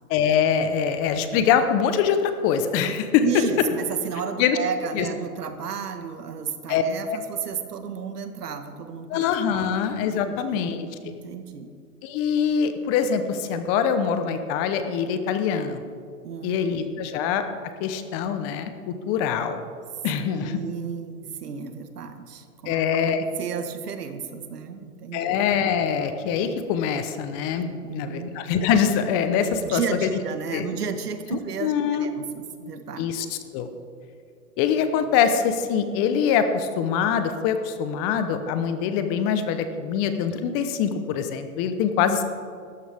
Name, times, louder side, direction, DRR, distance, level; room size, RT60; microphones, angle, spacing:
voice 1, 0.1-3.2 4.4-4.6 4.9-5.0 6.7-7.2 9.1-10.9 12.0-15.8 16.4-17.5 17.8-19.7 20.0-20.6 22.6-23.2 25.1-30.1 30.5-30.7 31.3-32.1 33.0-33.7 34.6-42.2, left 7 dB, 30° left, 9 dB, 0.9 m, -24 dB
voice 2, 3.2-9.2 9.5-9.7 10.2-10.6 11.0-11.7 16.2-16.6 17.0-17.1 20.2-22.8 23.4-25.4 27.8-28.3 29.6-31.7 32.0-33.1, right 6 dB, 80° right, 7 dB, 1.6 m, -33 dB
17.0 x 13.5 x 3.6 m, 2.2 s
hypercardioid pair, 130°, 46 cm